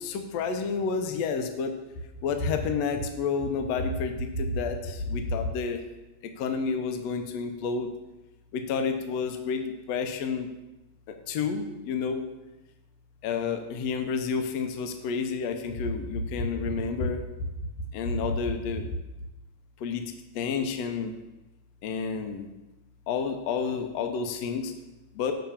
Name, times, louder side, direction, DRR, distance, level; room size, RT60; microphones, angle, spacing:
voice 1, 0.0-1.7 2.2-5.8 6.4-7.9 8.5-10.5 11.3-12.2 13.2-17.2 17.9-18.9 19.8-20.1 20.4-21.1 21.8-22.5 23.1-24.7 25.2-25.3, left 5 dB, 70° left, 6 dB, 1.7 m, -29 dB
7.4 x 5.9 x 7.1 m, 1.0 s
omnidirectional pair, 3.7 m